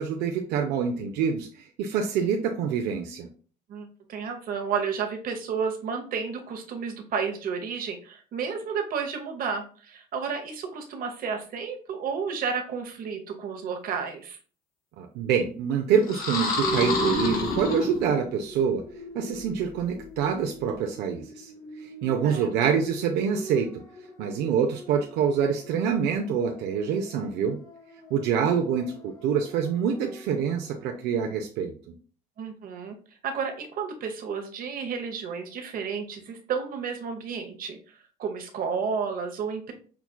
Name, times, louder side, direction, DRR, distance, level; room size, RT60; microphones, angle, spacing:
voice 1, 0.0-3.3 15.0-18.8 19.1-21.5 21.8-23.8 24.2-27.6 28.1-31.7, right 7 dB, 85° right, 4 dB, 0.5 m, -26 dB
voice 2, 3.7-14.4 22.2-22.7 32.4-33.0 33.2-37.8 38.2-39.7, right 6 dB, 55° right, 4 dB, 0.9 m, -32 dB
sound 1, 16.0-18.3, left 3 dB, 65° left, 1.6 m, -28 dB
sound 2, 16.6-30.8, right 1 dB, 20° left, 0.8 m, -39 dB
5.8 x 2.3 x 2.2 m, 0.42 s
cardioid pair, 110°, 17 cm